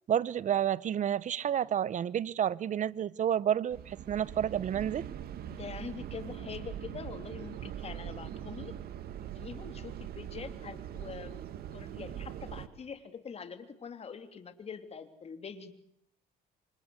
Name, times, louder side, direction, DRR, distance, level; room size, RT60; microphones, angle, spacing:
voice 1, 0.1-5.0, right 9 dB, 45° right, 1.0 m, -30 dB
sound 1, 3.7-12.7, right 10 dB, 65° right, 2.2 m, -42 dB
voice 2, 5.4-8.8 9.2-11.4 11.7-15.7, left 6 dB, 35° left, 3.2 m, -44 dB
28.5 x 25.5 x 8.0 m
cardioid pair, 110°, 17 cm